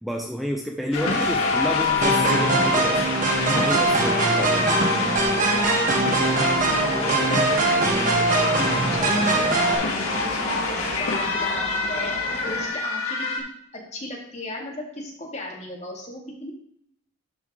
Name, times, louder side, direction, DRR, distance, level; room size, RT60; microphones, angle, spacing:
voice 1, 0.0-3.1 3.5-5.2, equal, ahead, 1 dB, 0.5 m, -30 dB
sound 1, 0.9-13.4, left 3 dB, 80° left, 1.6 m, -29 dB
sound 2, 0.9-12.7, left 4 dB, 50° left, 3.2 m, -29 dB
sound 3, 2.0-9.8, right 2 dB, 40° right, 1.2 m, -22 dB
voice 2, 3.4-3.7 4.1-4.6 5.4-6.5 6.8-12.2 12.4-13.4 13.9-16.5, left 2 dB, 30° left, -2 dB, 2.1 m, -36 dB
12.0 x 4.7 x 3.7 m, 0.72 s
head